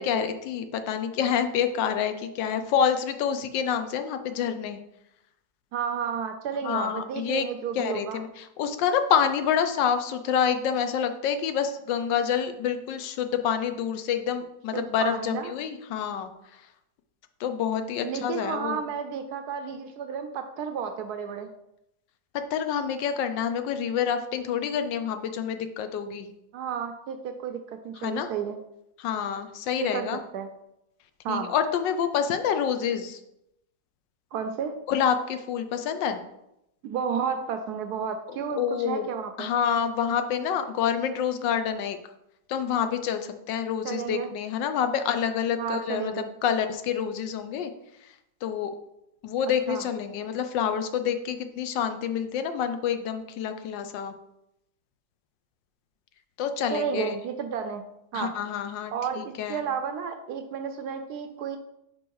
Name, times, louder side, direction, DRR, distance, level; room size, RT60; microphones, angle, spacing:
voice 1, 0.0-4.8 6.6-7.4 7.8-16.3 17.4-18.8 22.5-26.3 28.0-28.3 29.0-30.2 31.3-33.2 34.9-36.2 38.6-39.1 39.4-42.0 42.5-46.1 46.4-47.7 48.0-48.1 48.4-48.7 49.2-54.1 56.4-57.2 58.1-59.6, left 8 dB, 80° left, 9 dB, 1.3 m, -27 dB
voice 2, 5.7-8.2 14.7-15.5 18.0-21.5 26.5-28.6 29.8-30.1 30.3-30.5 31.2-31.5 34.3-34.8 36.8-39.5 43.8-44.3 45.6-46.3 49.7-49.8 56.7-57.8 58.1-58.3 58.9-61.6, right 7 dB, 70° right, 7 dB, 1.0 m, -32 dB
5.2 x 4.8 x 4.6 m, 0.83 s
omnidirectional pair, 2.0 m